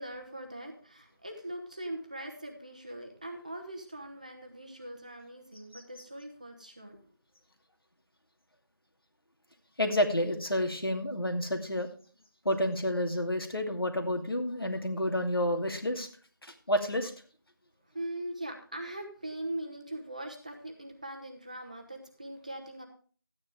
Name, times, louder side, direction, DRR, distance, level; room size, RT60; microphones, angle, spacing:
voice 1, 0.0-7.1 17.9-22.9, right 1 dB, 20° right, 4 dB, 0.9 m, -41 dB
voice 2, 9.8-11.9 12.4-16.1 16.4-17.1, left 1 dB, 90° left, 5 dB, 2.4 m, -30 dB
13.0 x 9.6 x 3.5 m, 0.42 s
figure-of-eight pair, 175°, 12 cm